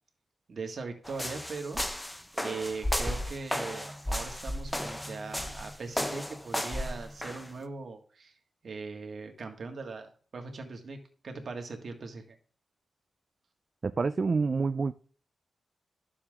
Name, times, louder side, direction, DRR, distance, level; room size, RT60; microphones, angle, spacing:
voice 1, 0.5-1.8 2.3-8.3 8.6-11.0 11.2-12.4, right 4 dB, 60° right, 1.8 m, -40 dB
sound 1, 1.0-7.5, equal, 10° left, 0.7 m, -34 dB
voice 2, 13.8-14.9, right 4 dB, 45° right, 0.4 m, -27 dB
11.5 x 7.2 x 3.7 m
wide cardioid pair, 90°, 0 cm